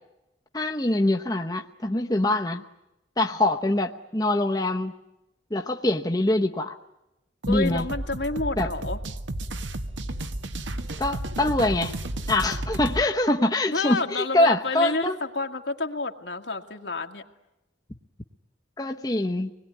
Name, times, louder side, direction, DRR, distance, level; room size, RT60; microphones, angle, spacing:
voice 1, 0.5-2.6 3.2-4.9 5.5-6.8 7.5-7.8 8.6-8.7 11.0-11.9 12.3-15.2 18.8-19.5, left 1 dB, 20° left, 3 dB, 0.9 m, -24 dB
sound 1, 7.4-13.0, right 1 dB, 80° right, 1.5 m, -32 dB
voice 2, 7.5-9.0 13.7-17.2, left 3 dB, 70° left, 4 dB, 2.0 m, -29 dB
26.0 x 21.0 x 9.6 m, 0.94 s
head